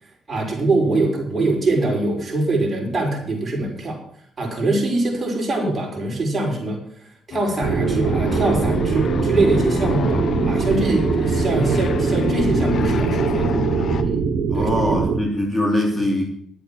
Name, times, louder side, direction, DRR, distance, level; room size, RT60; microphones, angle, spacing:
voice 1, 0.0-4.0 4.4-13.5 14.0-14.2 14.5-15.0, right 2 dB, 30° right, -1 dB, 5.6 m, -23 dB
sound 1, 7.3-14.0, left 6 dB, 60° left, 0.9 m, -28 dB
sound 2, 7.6-15.2, right 5 dB, 70° right, 1.9 m, -22 dB
voice 2, 14.5-16.2, left 1 dB, 15° left, 0 dB, 3.4 m, -22 dB
12.0 x 8.4 x 7.6 m, 0.64 s
cardioid pair, 90°, 0 cm